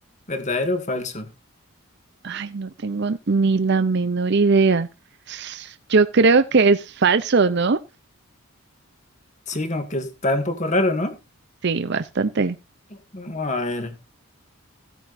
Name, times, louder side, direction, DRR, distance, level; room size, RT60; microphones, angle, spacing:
voice 1, 0.3-1.3 9.5-11.2 13.1-13.9, left 2 dB, 35° left, 2.0 m, -25 dB
voice 2, 2.2-4.9 5.3-7.8 11.6-12.6, right 4 dB, 50° right, 0.6 m, -20 dB
15.5 x 9.0 x 2.6 m
head